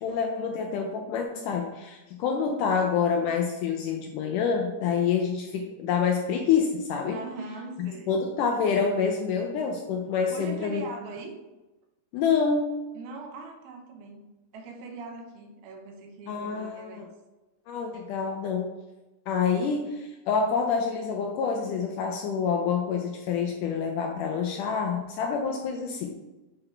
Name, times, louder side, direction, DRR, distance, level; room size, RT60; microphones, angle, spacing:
voice 1, 0.0-7.2 7.8-10.9 12.1-12.8 16.3-17.0 17.7-18.8 19.3-26.2, left 6 dB, 80° left, 2 dB, 1.9 m, -27 dB
voice 2, 7.1-8.2 10.3-11.4 12.9-14.3 14.5-17.0, right 3 dB, 90° right, 3 dB, 2.9 m, -41 dB
7.8 x 3.8 x 4.4 m, 1.1 s
omnidirectional pair, 4.2 m